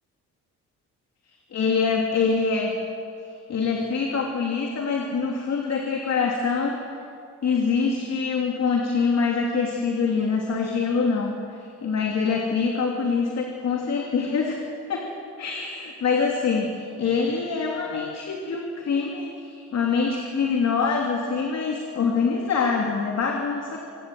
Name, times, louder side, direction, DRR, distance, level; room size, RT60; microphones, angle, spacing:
voice 1, 1.5-2.7 3.2-6.8 7.4-15.1 15.4-23.8, left 5 dB, 60° left, 1 dB, 3.1 m, -25 dB
26.5 x 19.5 x 7.8 m, 2.5 s
cardioid pair, 90°, 30 cm